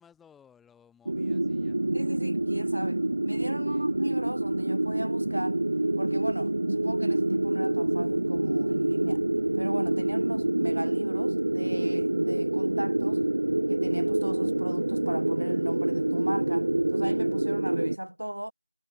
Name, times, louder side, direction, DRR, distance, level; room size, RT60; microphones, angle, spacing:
voice 1, 0.0-1.8 3.6-3.9, left 7 dB, ahead, 1.8 m, -59 dB
sound 1, 1.1-18.0, right 1 dB, 40° right, 0.3 m, -27 dB
voice 2, 1.9-5.6 6.0-9.2 9.5-13.2 13.7-18.5, equal, 80° right, 0.9 m, -36 dB
figure-of-eight pair, 175°, 0 cm